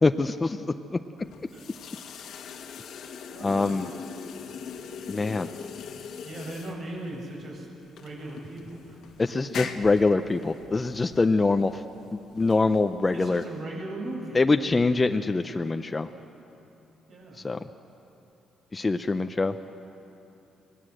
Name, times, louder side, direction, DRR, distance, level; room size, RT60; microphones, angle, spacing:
voice 1, 0.0-1.0 3.4-3.9 5.1-5.5 9.2-11.8 12.1-13.4 14.3-16.1 17.4-17.6 18.7-19.6, left 3 dB, 25° left, 7 dB, 0.6 m, -24 dB
sound 1, 1.2-13.6, left 6 dB, 75° left, 1.6 m, -42 dB
voice 2, 1.5-2.0 3.3-3.9 6.2-7.7 8.0-9.2 13.1-14.4 17.1-17.5, right 1 dB, 60° right, -2 dB, 7.2 m, -38 dB
25.5 x 18.5 x 7.8 m, 2.9 s
cardioid pair, 90°, 0 cm